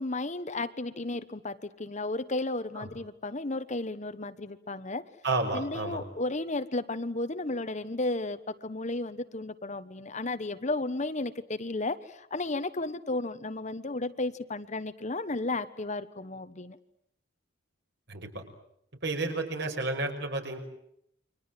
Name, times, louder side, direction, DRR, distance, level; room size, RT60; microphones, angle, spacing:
voice 1, 0.0-5.0 5.5-16.8, left 2 dB, 35° left, 12 dB, 1.1 m, -33 dB
voice 2, 5.2-6.0 18.1-18.4 19.0-20.6, right 2 dB, 60° right, 4 dB, 5.8 m, -31 dB
29.5 x 24.0 x 7.7 m, 0.75 s
head